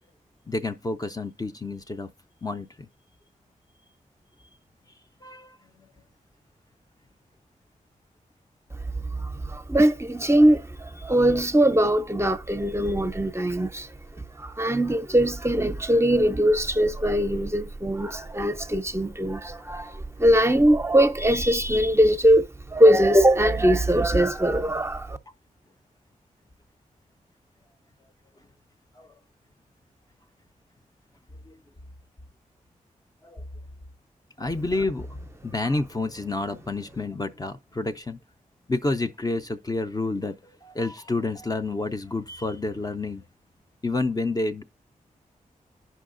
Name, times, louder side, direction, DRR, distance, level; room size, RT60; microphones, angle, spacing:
voice 1, 0.5-2.1 2.4-2.9 5.2-5.9 29.0-29.1 31.5-31.6 33.2-33.4 34.4-35.1 35.4-38.2 38.7-43.2 43.8-44.6, left 2 dB, 25° left, 0.5 m, -29 dB
voice 2, 9.2-13.9 14.4-25.2, equal, 20° right, 0.6 m, -21 dB
15.0 x 5.4 x 2.5 m
cardioid pair, 50°, 15 cm